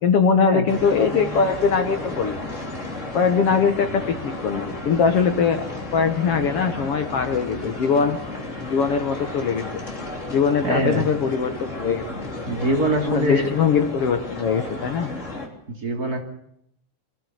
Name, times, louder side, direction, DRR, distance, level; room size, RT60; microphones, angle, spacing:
voice 1, 0.0-2.4 3.1-5.7 5.9-8.2 8.6-9.7 10.3-12.0 13.1-15.1, left 6 dB, 55° left, 8 dB, 2.1 m, -21 dB
sound 1, 0.7-15.5, left 2 dB, 25° left, 3.5 m, -33 dB
voice 2, 10.6-11.1 12.5-13.5 15.8-16.2, right 1 dB, 30° right, 3 dB, 3.3 m, -23 dB
24.5 x 15.5 x 9.3 m, 0.74 s
omnidirectional pair, 3.4 m